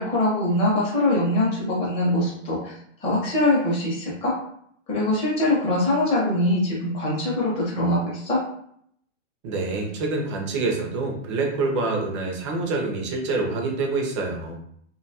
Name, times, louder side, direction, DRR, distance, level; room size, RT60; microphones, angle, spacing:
voice 1, 0.0-2.7 3.0-4.3 4.9-8.4, left 1 dB, 15° left, -4 dB, 0.7 m, -23 dB
voice 2, 9.4-14.6, right 3 dB, 25° right, 1 dB, 0.4 m, -26 dB
2.5 x 2.3 x 2.6 m, 0.68 s
hypercardioid pair, 145°, 37 cm